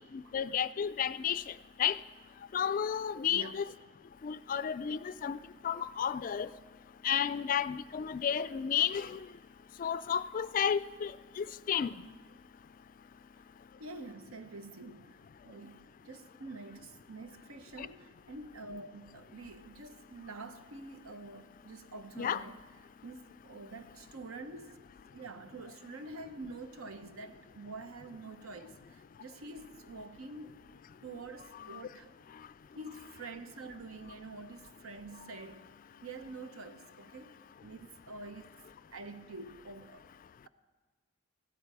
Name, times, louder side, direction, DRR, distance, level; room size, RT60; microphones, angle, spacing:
voice 1, 0.1-1.5 1.8-2.0 2.5-3.6 4.2-5.4 5.6-6.5 7.0-9.2 9.8-11.1 11.4-12.0 17.8-17.9 22.2-22.4 31.7-31.8, left 8 dB, 40° left, 15 dB, 0.3 m, -32 dB
voice 2, 3.2-3.6 13.8-22.6 23.0-24.8 25.1-30.6 31.0-32.1 32.8-35.7 36.0-38.5 38.9-40.1, right 3 dB, 80° right, 9 dB, 0.9 m, -47 dB
15.5 x 12.5 x 4.8 m, 1.4 s
head